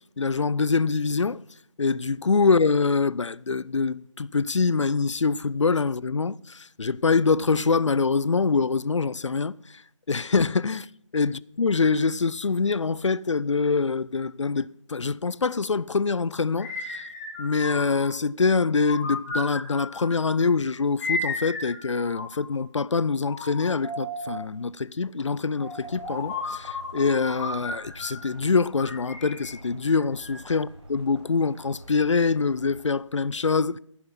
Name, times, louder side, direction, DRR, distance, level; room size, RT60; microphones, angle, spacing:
voice 1, 0.2-1.4 1.8-9.5 10.1-10.9 11.1-17.1 17.4-33.8, left 4 dB, 65° left, 0.4 m, -24 dB
sound 1, 16.6-18.2 18.8-20.3 21.0-22.6 23.3-24.5 25.6-28.3 28.8-30.6, left 2 dB, 5° left, 1.2 m, -34 dB
sound 2, 25.8-32.9, right 1 dB, 60° right, 4.9 m, -48 dB
15.0 x 6.0 x 5.7 m
figure-of-eight pair, 165°, 17 cm